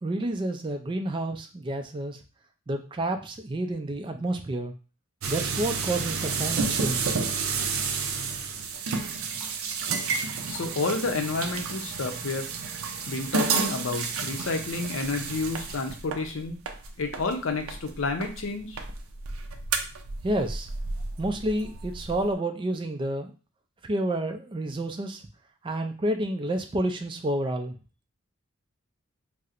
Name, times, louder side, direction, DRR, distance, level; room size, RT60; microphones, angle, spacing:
voice 1, 0.0-2.2 2.7-4.7 5.3-7.2 20.2-20.7 21.2-23.3 23.8-25.2 25.6-27.7, right 1 dB, 25° right, 6 dB, 0.3 m, -29 dB
sound 1, 5.2-18.4 18.7-22.3, right 5 dB, 85° right, 0.4 m, -31 dB
voice 2, 10.5-12.5 13.0-16.6 17.0-18.8, left 3 dB, 75° left, 5 dB, 0.6 m, -30 dB
4.2 x 2.0 x 2.4 m, 0.35 s
head